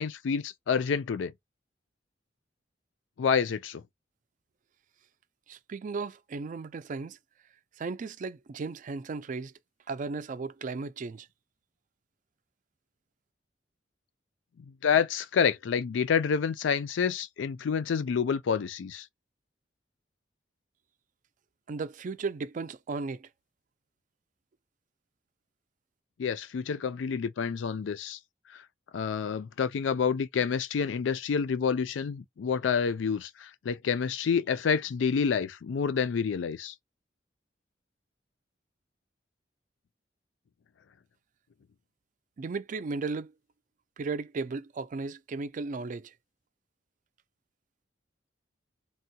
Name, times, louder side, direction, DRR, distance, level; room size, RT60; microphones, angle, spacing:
voice 1, 0.0-1.3 3.2-3.8 14.8-19.1 26.2-28.2 28.9-36.7, left 6 dB, 90° left, 0.4 m, -28 dB
voice 2, 5.5-7.2 7.8-9.5 9.9-11.3 21.7-23.3 42.4-43.3 44.0-46.1, right 4 dB, 45° right, 0.4 m, -35 dB
3.5 x 2.2 x 2.7 m
head